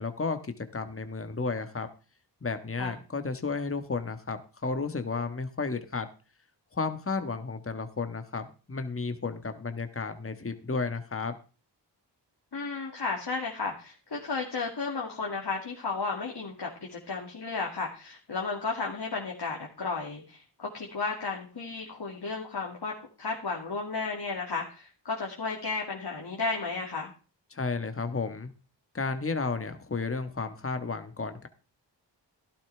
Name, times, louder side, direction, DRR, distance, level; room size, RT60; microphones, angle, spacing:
voice 1, 0.0-1.9 2.4-6.1 6.7-11.4 27.5-28.5 28.9-31.5, left 4 dB, 30° left, 8 dB, 1.4 m, -33 dB
voice 2, 12.5-27.1, left 4 dB, 55° left, -1 dB, 2.5 m, -33 dB
13.5 x 11.5 x 3.4 m, 0.35 s
cardioid pair, 45°, 46 cm